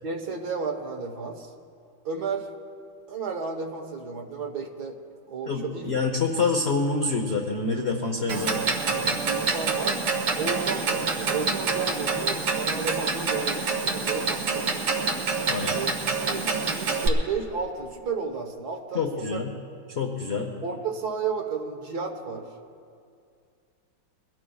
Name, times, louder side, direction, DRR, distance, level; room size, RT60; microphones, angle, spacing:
voice 1, 0.0-1.5 2.0-2.5 3.1-5.0 5.3-5.9 8.8-10.0 10.3-14.8 15.7-15.9 16.3-19.0 19.3-19.4 20.6-22.5, right 5 dB, 55° right, 3 dB, 1.7 m, -33 dB
voice 2, 5.5-8.6 15.5-15.8 18.9-19.5 20.0-20.5, left 4 dB, 45° left, 2 dB, 0.8 m, -26 dB
Clock, 8.3-17.1, right 4 dB, 70° right, 2.0 m, -27 dB
23.0 x 16.5 x 2.4 m, 2.3 s
omnidirectional pair, 2.3 m